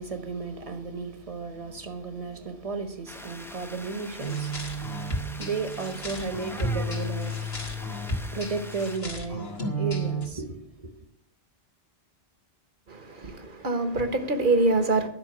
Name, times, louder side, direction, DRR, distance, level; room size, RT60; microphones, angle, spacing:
voice 1, 0.0-11.0, right 4 dB, 35° right, 1.3 m, -34 dB
sound 1, 3.1-9.0, equal, ahead, 0.8 m, -43 dB
sound 2, 4.2-10.3, right 1 dB, 70° left, 2.3 m, -32 dB
voice 2, 12.9-15.1, right 2 dB, 50° right, 1.4 m, -25 dB
11.5 x 5.9 x 9.2 m
omnidirectional pair, 1.1 m